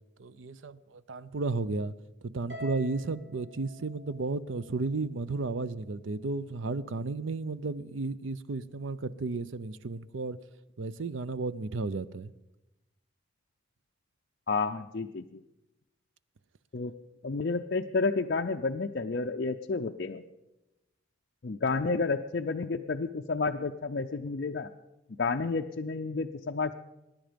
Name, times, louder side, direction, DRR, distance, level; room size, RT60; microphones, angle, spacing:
voice 1, 0.2-1.9 2.2-10.4 10.8-12.3, right 3 dB, 85° right, 0.6 m, -33 dB
Harp, 2.5-5.0, left 1 dB, 60° right, 4.8 m, -46 dB
voice 2, 14.5-15.4 16.7-16.9 17.2-20.2 21.4-24.7 25.2-26.7, left 4 dB, 55° left, 0.5 m, -30 dB
23.0 x 10.5 x 5.2 m
head